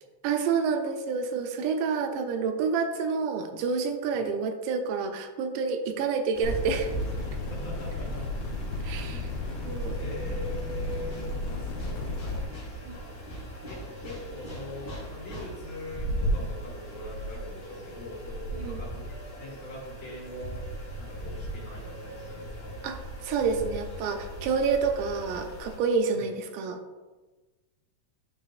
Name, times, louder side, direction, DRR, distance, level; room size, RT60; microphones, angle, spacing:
voice 1, 0.2-6.9 8.8-9.3 9.7-10.0 12.9-13.0 18.5-18.8 22.8-26.8, right 5 dB, 85° right, 5 dB, 2.2 m, -28 dB
sound 1, 6.3-25.8, right 1 dB, 35° left, 1.7 m, -38 dB
sound 2, 6.4-12.4, left 2 dB, 85° left, 1.1 m, -34 dB
voice 2, 7.5-8.2 8.9-9.7 10.0-13.1 13.7-20.6 21.0-22.8 26.1-26.3, left 1 dB, 55° left, -7 dB, 2.5 m, -42 dB
11.0 x 3.8 x 2.4 m, 1.2 s
omnidirectional pair, 3.6 m